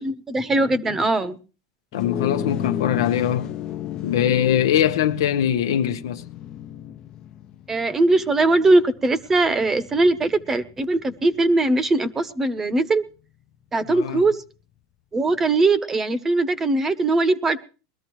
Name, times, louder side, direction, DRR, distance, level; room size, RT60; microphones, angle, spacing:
voice 1, 0.0-1.4 7.7-13.0 13.7-14.4 15.1-17.7, right 2 dB, 15° right, 0.9 m, -20 dB
voice 2, 1.9-3.5 4.0-6.2 13.9-14.2, left 10 dB, 85° left, 0.9 m, -22 dB
sound 1, 1.9-11.5, left 10 dB, 35° left, 0.7 m, -34 dB
22.0 x 13.5 x 3.1 m
supercardioid pair, 135°, 2 cm